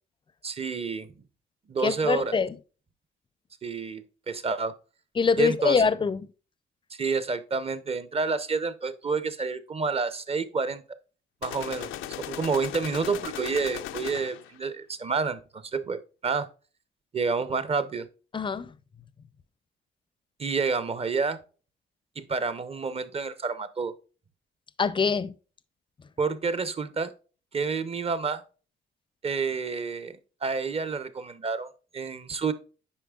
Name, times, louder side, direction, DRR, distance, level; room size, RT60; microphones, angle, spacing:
voice 1, 0.4-1.1 1.7-2.3 3.6-4.7 5.4-5.8 6.9-10.8 11.4-11.9 12.3-16.5 17.1-18.1 20.4-21.4 22.2-23.9 26.2-27.1 27.5-28.4 29.2-32.5, right 4 dB, 30° right, 0.8 m, -29 dB
voice 2, 1.8-2.6 5.2-6.3 18.3-18.7 24.8-25.3, left 5 dB, 25° left, 0.5 m, -24 dB
sound 1, 11.4-14.6, left 12 dB, 90° left, 0.5 m, -37 dB
8.5 x 5.5 x 2.3 m
cardioid pair, 90°, 20 cm